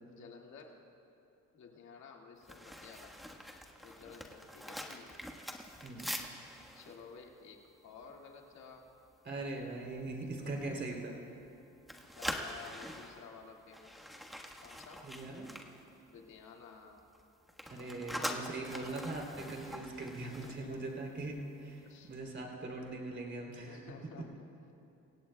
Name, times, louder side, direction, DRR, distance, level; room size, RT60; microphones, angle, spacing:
voice 1, 0.1-0.8 1.5-3.1 3.8-5.1 6.7-8.9 10.2-10.7 12.2-14.1 14.6-15.0 16.1-17.0 18.0-19.0 20.2-20.8 21.8-22.1 23.7-24.4, left 5 dB, 70° left, 0 dB, 2.1 m, -54 dB
sound 1, 2.4-8.5 8.9-9.1 9.5-9.8 10.3-11.5 11.8-16.6 16.8-21.3 21.6-21.8, equal, ahead, 1.4 m, -45 dB
voice 2, 5.8-6.1 9.2-11.1 15.0-15.5 17.7-21.8 22.1-23.8, right 2 dB, 35° right, -1 dB, 3.2 m, -41 dB
25.0 x 17.0 x 2.3 m, 2.8 s
cardioid pair, 90°, 30 cm